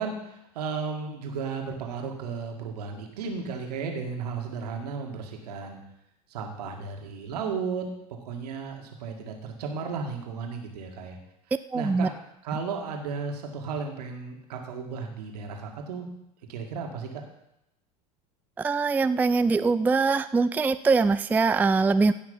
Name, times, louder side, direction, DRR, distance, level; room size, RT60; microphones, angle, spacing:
voice 1, 0.0-5.8 6.3-11.2 11.7-12.1 12.4-16.1 16.5-17.2, right 5 dB, 70° right, 3 dB, 2.0 m, -34 dB
voice 2, 11.7-12.1 18.6-22.1, right 4 dB, 10° right, 12 dB, 0.3 m, -23 dB
16.0 x 5.8 x 5.5 m, 0.84 s
figure-of-eight pair, 75°, 21 cm